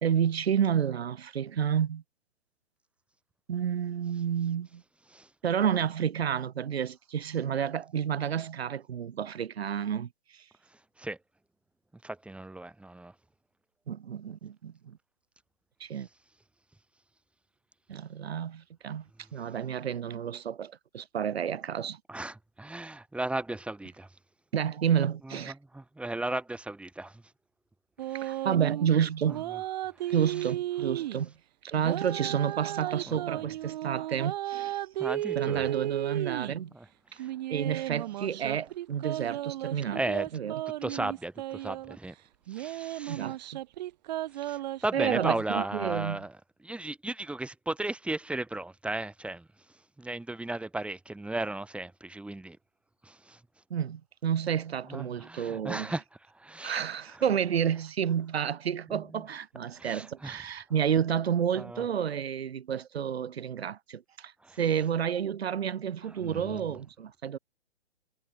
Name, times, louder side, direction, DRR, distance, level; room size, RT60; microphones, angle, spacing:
voice 1, 0.0-2.0 3.5-4.8 5.4-10.1 13.9-15.0 15.8-16.1 17.9-19.0 19.3-22.0 24.5-25.5 28.1-29.4 30.1-31.3 31.6-34.8 35.4-36.7 37.5-40.0 40.3-40.6 43.1-43.6 44.9-46.2 53.7-55.9 56.6-64.3 64.6-67.4, right 8 dB, 60° right, 2.3 m, -30 dB
voice 2, 12.0-13.1 22.1-24.1 25.2-27.2 28.1-28.4 29.3-29.4 30.0-30.1 33.1-33.2 35.0-35.7 36.7-37.3 39.9-40.3 40.8-42.1 42.5-43.3 44.3-46.3 46.6-49.5 50.0-52.6 53.0-53.4 54.9-56.0 56.3-56.8 57.1-57.2 58.9-59.2 59.7-60.4 61.5-61.8 64.4-64.6 66.2-66.6, right 2 dB, 5° right, 8.0 m, -36 dB
sound 1, 28.0-28.9 29.3-31.2 31.8-36.6 37.2-42.0 42.5-45.7, right 14 dB, 40° right, 1.1 m, -34 dB
figure-of-eight pair, 130°, 35 cm